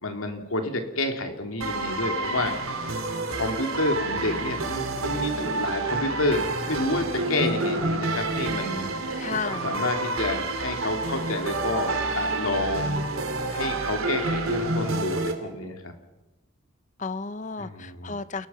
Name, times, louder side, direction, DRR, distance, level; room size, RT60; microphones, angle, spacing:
voice 1, 0.0-2.5 3.3-8.9 9.1-9.2 9.6-13.0 13.5-15.9 17.6-18.1, left 2 dB, 85° left, 5 dB, 3.0 m, -29 dB
sound 1, 1.6-15.3, right 2 dB, 90° right, 3.0 m, -28 dB
voice 2, 9.2-9.7 17.0-18.5, left 4 dB, 35° left, 15 dB, 0.7 m, -33 dB
29.5 x 18.0 x 5.8 m, 1.0 s
head